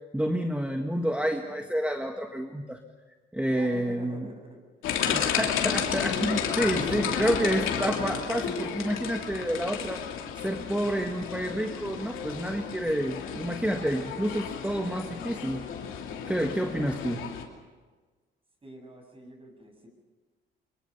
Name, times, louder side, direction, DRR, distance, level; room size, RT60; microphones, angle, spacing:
voice 1, 0.1-2.8 3.3-4.3 5.1-10.0 10.3-15.7 16.3-17.3, right 1 dB, 5° right, 4 dB, 1.6 m, -29 dB
voice 2, 1.0-1.6 3.5-4.6 5.9-7.5 18.6-19.9, equal, 25° right, 4 dB, 7.7 m, -44 dB
sound 1, 4.8-17.4, left 7 dB, 85° left, 3.0 m, -32 dB
24.5 x 23.5 x 6.9 m, 1.4 s
cardioid pair, 90°, 20 cm